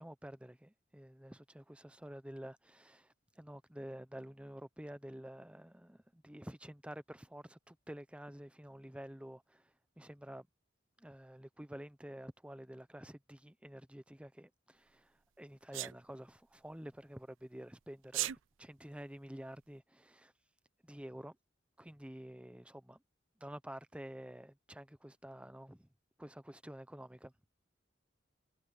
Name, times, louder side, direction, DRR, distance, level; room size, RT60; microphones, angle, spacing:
voice 1, 0.0-10.5 11.0-20.3 20.8-21.4 21.8-23.0 23.4-25.9 26.2-27.3, equal, 5° right, 0.8 m, -50 dB
Sneeze, 15.7-15.9 18.0-18.4, right 15 dB, 75° right, 0.4 m, -35 dB
head